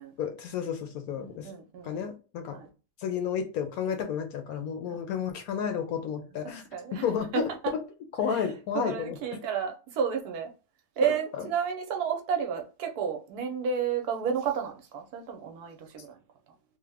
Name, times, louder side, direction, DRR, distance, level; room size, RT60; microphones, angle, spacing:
voice 1, 0.2-1.5 1.8-2.6 3.0-6.6 7.0-7.4 7.7-7.8 8.2-9.2 11.0-11.5, left 7 dB, 70° left, 1.0 m, -31 dB
voice 2, 1.2-2.0 2.5-2.7 4.9-5.0 6.4-7.0 7.3-7.7 8.3-8.5 8.7-10.5 11.0-16.2, right 7 dB, 70° right, 1.1 m, -31 dB
3.2 x 2.1 x 3.3 m
omnidirectional pair, 1.8 m